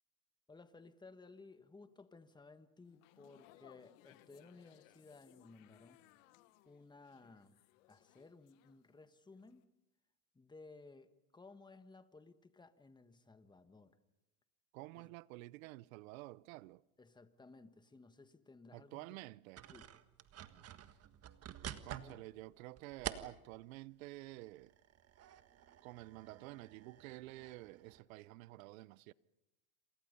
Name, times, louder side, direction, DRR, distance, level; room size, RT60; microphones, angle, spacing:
voice 1, 0.5-6.1 6.6-7.6 7.9-9.7 10.3-14.0 15.0-15.1 17.0-19.2 19.7-19.9 22.0-22.2, left 3 dB, 10° left, 1.5 m, -58 dB
sound 1, 2.9-9.1 9.4-9.6, left 16 dB, 70° left, 1.7 m, -65 dB
voice 2, 14.7-16.8 18.7-19.6 21.8-24.7 25.8-29.1, right 19 dB, 70° right, 0.8 m, -50 dB
sound 2, 19.6-23.7 24.2-28.0, right 11 dB, 35° right, 1.6 m, -49 dB
28.0 x 27.5 x 5.5 m
supercardioid pair, 110°, 41 cm